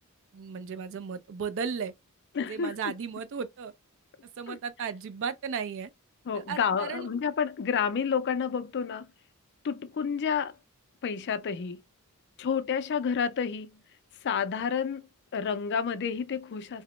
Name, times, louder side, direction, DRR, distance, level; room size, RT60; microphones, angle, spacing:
voice 1, 0.3-1.9 2.5-3.7 4.4-5.9 6.3-7.1, right 6 dB, 60° right, 0.4 m, -35 dB
voice 2, 2.3-2.9 4.5-4.6 6.3-9.1 9.6-10.5 11.0-11.8 12.4-13.8 14.2-15.1 15.3-16.8, left 6 dB, 50° left, 0.4 m, -30 dB
2.8 x 2.0 x 3.0 m
head